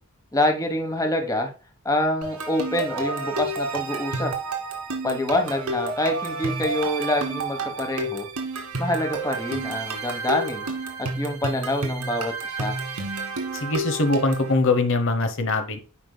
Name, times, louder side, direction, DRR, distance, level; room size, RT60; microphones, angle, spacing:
voice 1, 0.3-1.5 1.8-4.3 5.0-8.3 8.8-10.7 11.2-12.8, left 1 dB, 15° left, 4 dB, 1.2 m, -26 dB
sound 1, 2.2-14.5, right 2 dB, 85° right, 1.9 m, -30 dB
voice 2, 13.5-15.8, left 3 dB, 60° left, 8 dB, 1.0 m, -22 dB
9.8 x 5.3 x 2.3 m, 0.36 s
head